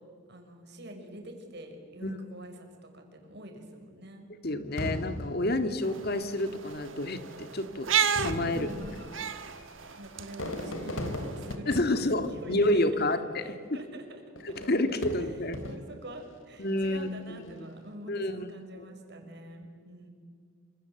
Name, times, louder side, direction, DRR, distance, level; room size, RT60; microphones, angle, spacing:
voice 1, 0.3-4.3 8.5-9.1 10.0-12.9 13.4-14.2 15.1-20.1, right 1 dB, 55° right, 4 dB, 5.4 m, -45 dB
voice 2, 4.4-7.9 8.2-8.7 11.7-13.5 14.7-15.6 16.6-17.1 17.4-17.7 18.1-18.5 18.8-18.9, left 1 dB, 50° left, 9 dB, 2.0 m, -29 dB
Fireworks, 4.8-6.4 7.2-7.3 8.0-13.3 14.4-16.1 16.7-17.2, left 1 dB, 75° left, 3.5 m, -39 dB
sound 1, 5.8-11.5, right 7 dB, 75° right, 1.5 m, -33 dB
27.5 x 27.0 x 7.9 m, 2.1 s
head